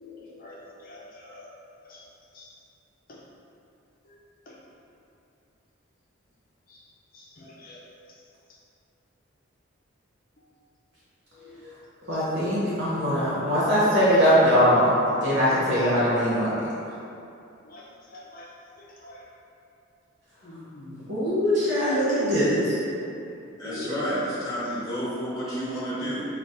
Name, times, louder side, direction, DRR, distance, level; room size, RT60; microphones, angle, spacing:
voice 1, 0.0-0.5 0.9-1.5 1.9-2.0 2.3-2.5 7.1-7.8 11.4-11.6 17.7-17.8 18.1-18.4 18.8-19.2 20.4-21.0, left 2 dB, 45° left, -4 dB, 0.5 m, -46 dB
voice 2, 12.1-14.9 15.2-16.5 20.9-22.7 23.6-24.1, equal, 55° right, -10 dB, 0.8 m, -22 dB
voice 3, 23.6-26.3, equal, 15° left, -9 dB, 1.1 m, -30 dB
3.9 x 2.3 x 3.5 m, 2.6 s
head